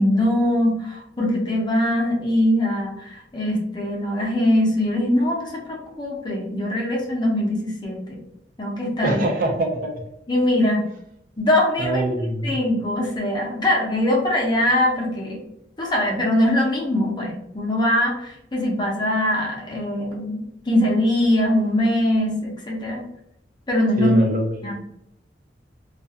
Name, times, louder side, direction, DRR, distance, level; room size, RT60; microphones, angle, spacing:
voice 1, 0.0-8.2 8.6-9.2 10.3-10.8 11.4-15.4 15.8-23.0 23.7-24.2 24.6-24.7, left 1 dB, 25° left, -2 dB, 0.6 m, -22 dB
voice 2, 9.0-10.0 11.8-12.6 24.0-24.7, right 1 dB, 50° right, 2 dB, 0.5 m, -24 dB
2.3 x 2.2 x 2.6 m, 0.75 s
head